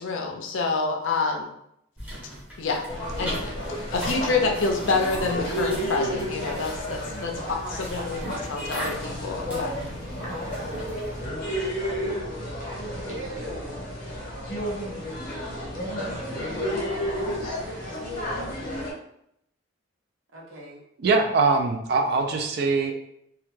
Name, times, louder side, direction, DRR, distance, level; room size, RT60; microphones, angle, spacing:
voice 1, 0.0-1.5 2.6-2.8 3.2-3.6 3.9-9.8, left 4 dB, 70° left, 3 dB, 0.4 m, -27 dB
sound 1, 2.0-11.3, equal, 10° right, 0.6 m, -39 dB
sound 2, 2.9-18.9, equal, 40° left, 0.8 m, -32 dB
voice 2, 7.3-8.4 10.2-11.0 11.5-12.3 13.0-13.7 17.5-18.0 20.3-20.8 22.0-22.4, right 2 dB, 75° right, -2 dB, 0.7 m, -41 dB
voice 3, 21.0-22.9, right 4 dB, 50° right, 4 dB, 0.3 m, -22 dB
2.2 x 2.1 x 3.1 m, 0.75 s
head